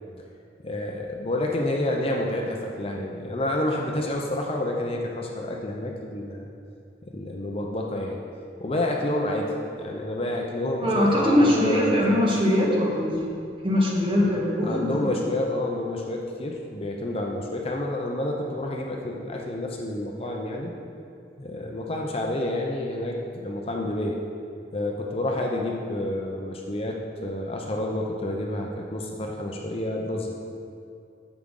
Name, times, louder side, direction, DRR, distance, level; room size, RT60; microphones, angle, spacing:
voice 1, 0.6-6.5 7.1-8.2 8.6-9.5 9.8-12.3 14.6-20.7 21.4-24.2 24.7-30.4, left 1 dB, 30° left, 0 dB, 0.6 m, -29 dB
voice 2, 10.8-13.2 13.6-15.1, left 1 dB, 30° right, -4 dB, 1.4 m, -21 dB
9.9 x 7.3 x 3.8 m, 2.5 s
head